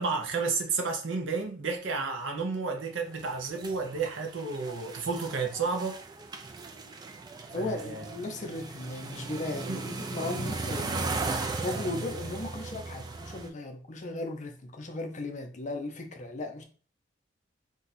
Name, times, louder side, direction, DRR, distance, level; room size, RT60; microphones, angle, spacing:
voice 1, 0.0-6.0 7.5-8.0 9.6-9.8, right 4 dB, 70° right, 0.7 m, -31 dB
sound 1, 3.2-13.5, right 3 dB, 20° right, 0.3 m, -37 dB
voice 2, 7.5-16.6, left 2 dB, 40° left, 0.6 m, -37 dB
2.6 x 2.3 x 4.0 m
head